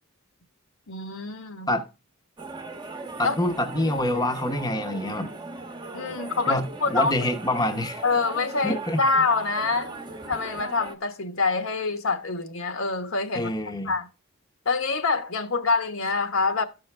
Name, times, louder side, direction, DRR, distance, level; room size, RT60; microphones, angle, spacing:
voice 1, 0.9-1.7 3.2-3.3 5.9-7.1 8.0-10.0 10.3-13.5 13.8-14.1 14.6-16.6, left 4 dB, 65° left, 1.2 m, -26 dB
sound 1, 2.4-10.9, right 3 dB, 20° right, 1.0 m, -39 dB
voice 2, 3.2-5.3 6.5-8.0 8.6-9.0 13.3-13.9, left 1 dB, 20° left, 0.9 m, -26 dB
13.0 x 5.8 x 3.3 m
head